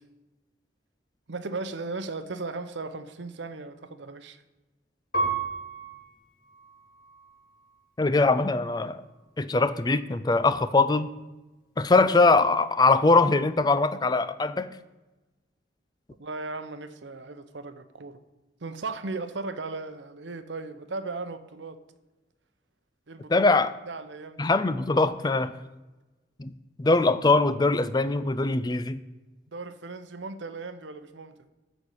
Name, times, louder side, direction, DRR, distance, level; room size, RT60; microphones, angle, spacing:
voice 1, 1.3-4.4 16.2-18.2 18.6-21.8 23.1-23.5 23.9-24.5 29.5-31.3, right 3 dB, 80° right, 10 dB, 0.8 m, -37 dB
Piano, 5.1-7.9 8.5-9.2, right 3 dB, 50° left, 2.4 m, -34 dB
voice 2, 8.0-9.0 9.4-11.1 11.8-14.7 23.3-23.7 24.4-25.5 26.4-26.5 26.8-29.0, left 3 dB, 20° left, 13 dB, 0.4 m, -22 dB
13.0 x 4.4 x 8.1 m, 1.1 s
head